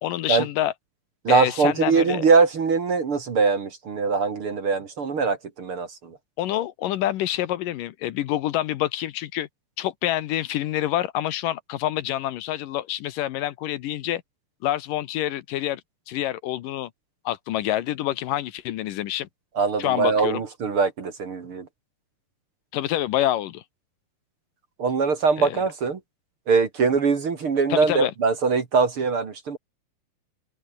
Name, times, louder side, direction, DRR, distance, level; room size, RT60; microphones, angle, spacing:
voice 1, 0.0-0.7 1.3-2.3 6.4-9.5 9.8-14.2 14.6-15.8 16.1-16.9 17.3-19.3 19.8-20.4 22.7-23.6 25.4-25.6 27.7-28.1, left 13 dB, 75° left, 2.6 m, -27 dB
voice 2, 1.2-6.2 19.6-21.7 24.8-26.0 26.5-29.6, right 5 dB, 45° right, 2.7 m, -22 dB
open air
omnidirectional pair, 4.0 m